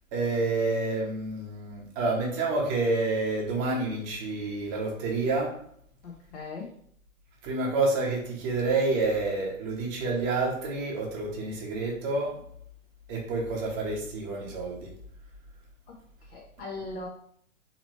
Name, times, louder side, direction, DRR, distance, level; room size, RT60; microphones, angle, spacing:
voice 1, 0.1-5.7 7.4-12.5 13.1-14.9, right 3 dB, 20° right, -2 dB, 0.9 m, -28 dB
voice 2, 6.0-6.7 15.9-17.1, left 3 dB, 45° left, -2 dB, 0.8 m, -40 dB
3.9 x 2.9 x 3.0 m, 0.63 s
figure-of-eight pair, 115°, 43 cm